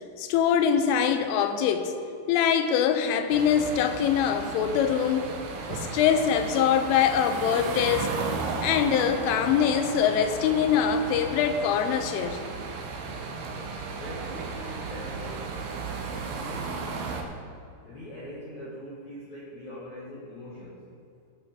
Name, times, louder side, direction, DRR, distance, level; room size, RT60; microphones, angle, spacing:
voice 1, 0.2-1.9 2.3-5.3 5.7-8.1 8.6-12.4, left 8 dB, 90° left, 8 dB, 3.2 m, -23 dB
sound 1, 3.3-17.2, right 4 dB, 70° right, 2.6 m, -34 dB
voice 2, 13.9-15.5 16.3-17.1 17.9-20.8, left 1 dB, 70° left, -7 dB, 1.8 m, -42 dB
17.5 x 8.3 x 3.7 m, 2.5 s
omnidirectional pair, 5.6 m